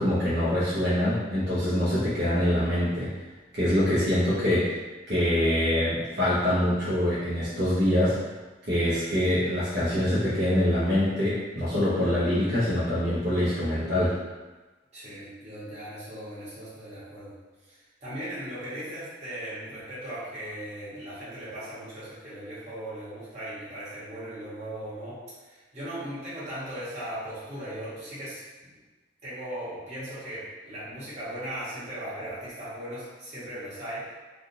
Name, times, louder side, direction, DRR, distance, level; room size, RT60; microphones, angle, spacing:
voice 1, 0.0-3.1 3.5-4.7 5.1-8.2 8.7-14.1, left 1 dB, 60° right, -11 dB, 0.9 m, -24 dB
voice 2, 14.9-17.3 17.7-25.2 25.4-28.7 29.2-34.1, right 1 dB, 35° right, -11 dB, 1.3 m, -38 dB
3.5 x 2.4 x 2.7 m, 1.2 s
head